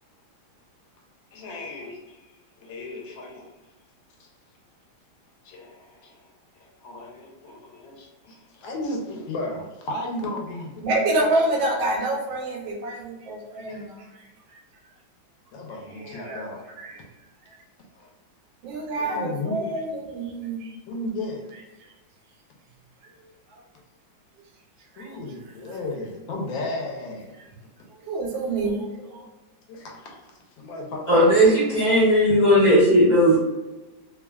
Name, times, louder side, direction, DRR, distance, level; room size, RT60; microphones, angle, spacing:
voice 1, 1.3-3.5 4.2-4.3 5.4-10.8 13.7-13.8 15.5-16.7 18.0-18.1 19.0-19.7 20.9-21.4 25.0-27.3 29.0-29.3 29.7-30.3 30.6-31.4, left 2 dB, 80° left, 0 dB, 1.3 m, -35 dB
voice 2, 10.8-14.3 15.9-16.5 16.8-17.0 17.5-17.6 18.6-20.7 24.9-25.2 27.9-29.3, right 2 dB, 80° right, 1 dB, 1.4 m, -27 dB
voice 3, 31.1-33.4, equal, 30° left, -9 dB, 1.0 m, -16 dB
3.2 x 2.3 x 2.2 m, 1.1 s
omnidirectional pair, 2.2 m